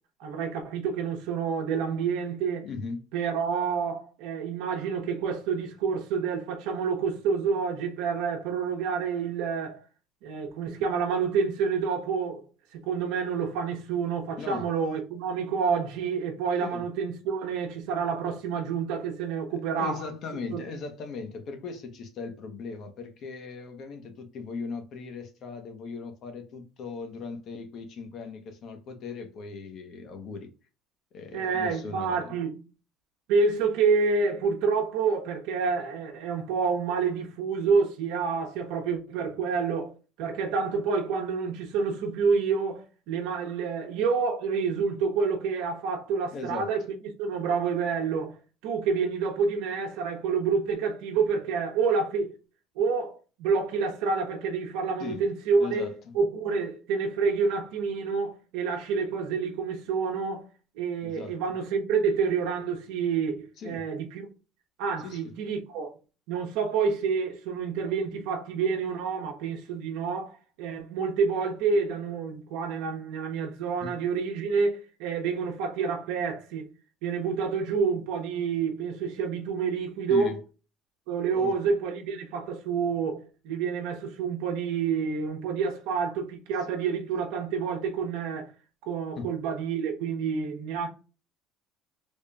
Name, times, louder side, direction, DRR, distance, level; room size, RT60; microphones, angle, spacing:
voice 1, 0.2-2.7 3.1-9.8 10.2-12.4 12.7-20.0 20.5-20.6 31.3-32.6 33.3-46.8 47.2-48.4 48.6-52.3 52.8-55.9 56.1-60.5 60.8-64.3 64.8-65.9 66.3-76.7 77.0-80.4 81.1-88.5 88.9-90.9, right 5 dB, 85° right, 0.9 m, -28 dB
voice 2, 2.6-3.0 14.4-14.7 16.6-16.8 19.5-30.5 31.1-32.3 46.3-46.7 55.0-55.2 55.6-56.1 61.0-61.4 63.6-63.9 65.0-65.3 73.8-74.0 80.1-80.4 81.3-81.5 89.2-89.3, left 4 dB, 50° left, 0.8 m, -38 dB
3.6 x 2.2 x 3.8 m
cardioid pair, 140°, 0 cm